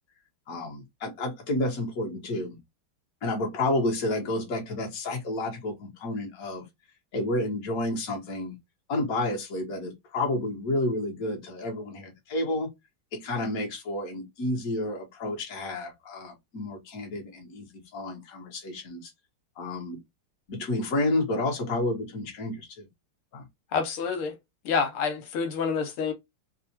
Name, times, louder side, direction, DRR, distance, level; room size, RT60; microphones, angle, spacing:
voice 1, 0.5-2.6 3.2-6.6 7.1-8.6 8.9-12.7 13.1-19.1 19.6-20.0 20.5-22.9 23.3-23.5, left 2 dB, 45° left, 1.4 m, -30 dB
voice 2, 23.7-24.4 24.6-26.1, left 5 dB, 85° left, 1.7 m, -28 dB
3.5 x 2.4 x 2.8 m
omnidirectional pair, 2.3 m